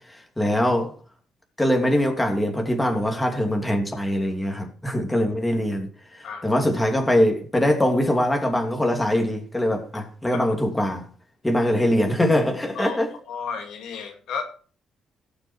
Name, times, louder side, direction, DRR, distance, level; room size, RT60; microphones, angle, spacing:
voice 1, 0.1-0.9 1.6-11.1 11.4-13.1, left 1 dB, 10° left, 3.0 m, -23 dB
voice 2, 6.2-6.6 10.3-10.4 12.7-13.0 13.3-14.4, left 5 dB, 80° left, 2.4 m, -33 dB
17.5 x 7.0 x 4.7 m
cardioid pair, 90°, 0 cm